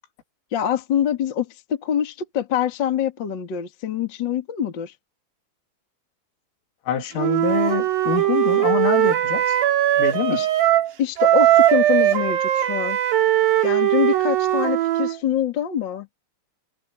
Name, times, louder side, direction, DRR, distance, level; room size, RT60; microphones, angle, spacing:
voice 1, 0.5-4.9 10.3-10.5 11.0-13.0 13.6-16.1, left 10 dB, 45° left, 1.6 m, -25 dB
voice 2, 6.9-9.6 10.0-10.4, left 10 dB, 85° left, 4.9 m, -25 dB
Wind instrument woodwind instrument, 7.2-10.9 11.2-15.2, right 13 dB, 65° right, 4.0 m, -19 dB
omnidirectional pair, 5.7 m